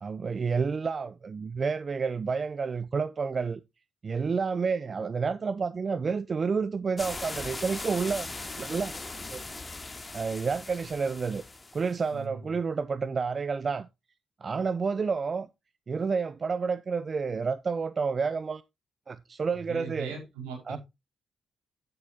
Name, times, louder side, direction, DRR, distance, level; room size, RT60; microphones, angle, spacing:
voice 1, 0.0-3.6 4.0-8.3 8.6-8.9 9.3-9.4 10.1-11.4 11.7-13.9 14.4-15.5 15.9-18.6 19.1-20.1 20.7-20.8, right 5 dB, 50° right, 0.6 m, -29 dB
sound 1, 7.0-12.0, left 3 dB, 30° left, 2.6 m, -39 dB
voice 2, 12.1-12.5 19.5-20.8, right 5 dB, 90° right, 4.9 m, -40 dB
11.0 x 9.1 x 2.8 m
hypercardioid pair, 45°, 0 cm